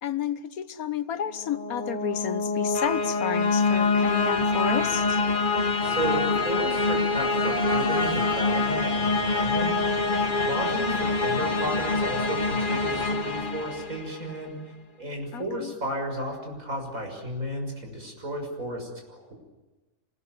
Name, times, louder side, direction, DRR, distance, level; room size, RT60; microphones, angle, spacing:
voice 1, 0.0-5.2 10.6-11.1 15.3-15.7, left 8 dB, 85° left, 1.6 m, -31 dB
sound 1, 1.3-14.3, left 3 dB, 35° left, 1.5 m, -25 dB
Human voice, 3.8-5.1 5.8-6.4 7.2-9.0, right 1 dB, 5° right, 5.6 m, -37 dB
voice 2, 5.8-9.9 10.4-14.6 15.0-19.3, right 1 dB, 70° right, 6.9 m, -33 dB
27.0 x 20.5 x 9.5 m
omnidirectional pair, 1.5 m